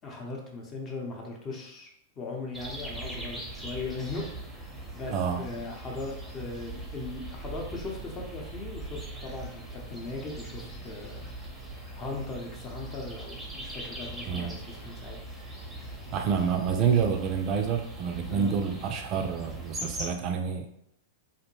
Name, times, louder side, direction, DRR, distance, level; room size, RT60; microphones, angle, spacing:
voice 1, 0.0-1.9 2.2-11.3 11.9-15.2 18.3-18.6, left 3 dB, 30° left, 0 dB, 0.7 m, -39 dB
sound 1, 2.5-20.1, right 1 dB, 5° right, 0.7 m, -41 dB
voice 2, 16.1-20.7, right 7 dB, 40° right, 5 dB, 0.3 m, -28 dB
2.6 x 2.1 x 3.1 m, 0.73 s
hypercardioid pair, 100°, 0 cm